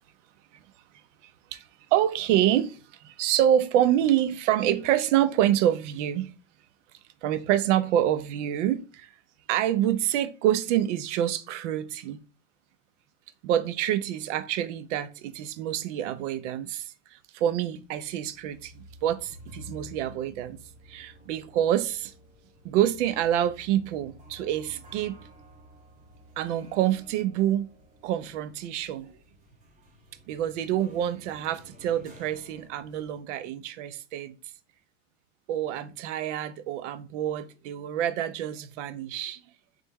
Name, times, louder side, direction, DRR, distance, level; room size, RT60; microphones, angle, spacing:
voice 1, 1.2-6.3 7.2-9.1 9.5-12.2 13.4-20.6 20.9-22.1 22.6-25.2 26.4-27.7 28.0-29.2 30.3-34.4 35.5-39.4, right 11 dB, 70° right, 0.6 m, -27 dB
sound 1, 17.4-33.2, equal, 20° right, 0.5 m, -52 dB
4.0 x 3.4 x 3.5 m
supercardioid pair, 175°, 38 cm